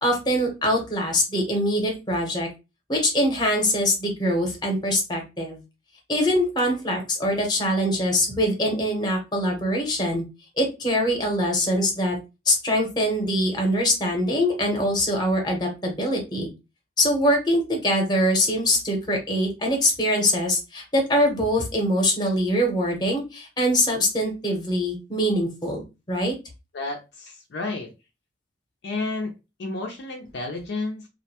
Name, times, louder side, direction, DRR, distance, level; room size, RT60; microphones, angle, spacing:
voice 1, 0.0-2.5 2.9-5.6 6.1-10.2 10.6-12.2 12.5-16.5 17.0-26.3, equal, 25° left, 2 dB, 0.8 m, -23 dB
voice 2, 26.7-27.9 28.8-29.3 29.6-31.1, left 2 dB, 65° left, 1 dB, 0.5 m, -31 dB
2.4 x 2.1 x 2.8 m, 0.27 s
head